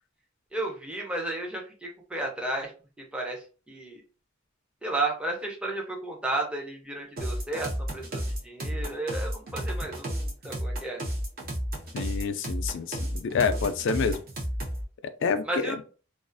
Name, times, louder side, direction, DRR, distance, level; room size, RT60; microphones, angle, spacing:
voice 1, 0.5-2.7 3.0-4.0 4.8-11.0 15.4-15.8, right 2 dB, 5° right, -1 dB, 0.5 m, -33 dB
sound 1, 7.2-14.8, equal, 50° right, 0.7 m, -32 dB
voice 2, 11.9-14.2 15.0-15.8, left 5 dB, 65° left, 10 dB, 0.3 m, -28 dB
2.4 x 2.4 x 2.5 m, 0.35 s
head